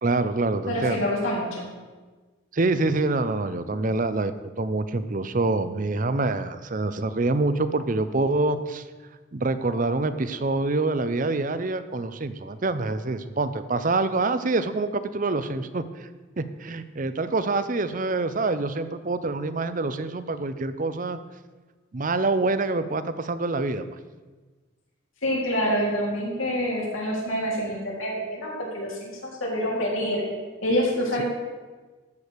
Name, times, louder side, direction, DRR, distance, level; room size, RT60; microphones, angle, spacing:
voice 1, 0.0-1.1 2.5-4.3 4.6-8.8 9.3-16.1 16.4-21.2 21.9-23.9, right 3 dB, 40° right, 12 dB, 0.6 m, -26 dB
voice 2, 0.7-1.7 25.2-30.2 30.6-31.2, equal, 75° left, -3 dB, 3.9 m, -26 dB
14.0 x 5.0 x 8.2 m, 1.3 s
head